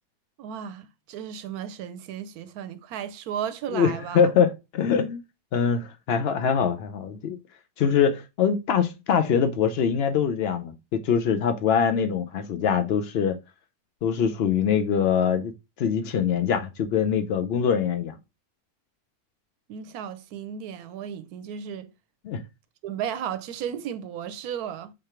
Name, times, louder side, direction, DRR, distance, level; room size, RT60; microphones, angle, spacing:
voice 1, 0.4-4.3 19.7-21.9 22.8-24.9, right 9 dB, 75° right, 1.0 m, -34 dB
voice 2, 3.7-5.2 5.5-7.4 7.8-13.4 14.0-15.5 15.8-18.1 22.2-22.4, left 7 dB, 85° left, 0.5 m, -23 dB
3.8 x 3.3 x 4.2 m
omnidirectional pair, 1.6 m